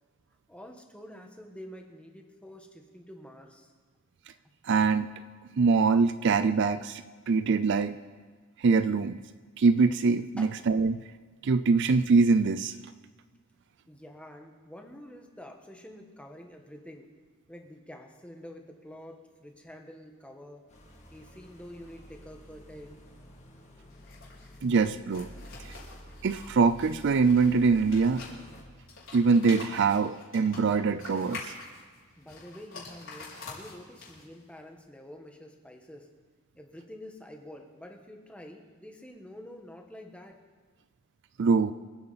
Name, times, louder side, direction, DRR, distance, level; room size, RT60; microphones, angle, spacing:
voice 1, 0.5-3.7 10.4-10.5 13.9-17.1 17.5-20.7 21.1-23.0 32.2-36.1 36.5-40.4, left 1 dB, 5° left, 3 dB, 1.3 m, -47 dB
voice 2, 4.6-5.1 5.6-8.0 8.6-9.2 9.6-11.0 11.4-12.8 24.6-25.3 25.6-25.8 26.2-28.3 29.1-31.5 41.4-41.7, right 4 dB, 55° right, 12 dB, 0.4 m, -24 dB
sound 1, 20.7-28.6, equal, 30° left, 2.1 m, -50 dB
sound 2, 23.9-34.4, left 3 dB, 55° left, 4.8 m, -46 dB
26.0 x 9.0 x 4.1 m, 1.5 s
head